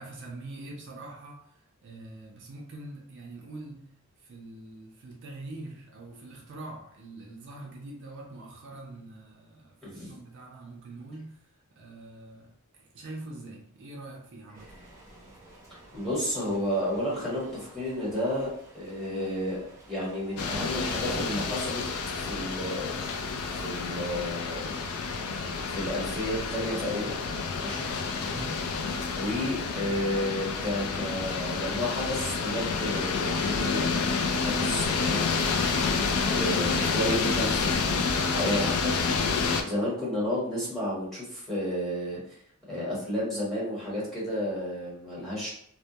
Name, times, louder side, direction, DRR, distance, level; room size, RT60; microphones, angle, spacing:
voice 1, 0.0-14.8 27.9-28.8, right 2 dB, 55° right, 0.4 m, -44 dB
voice 2, 9.8-10.1 15.9-21.8 22.3-23.0 23.6-24.7 25.7-27.2 27.6-27.9 29.1-34.0 34.4-35.9 36.3-42.2 42.7-45.5, left 1 dB, ahead, 1.0 m, -32 dB
sound 1, 14.5-24.2, right 1 dB, 15° right, 0.7 m, -50 dB
sound 2, 20.4-39.6, left 4 dB, 70° left, 0.4 m, -29 dB
2.1 x 2.1 x 2.7 m
head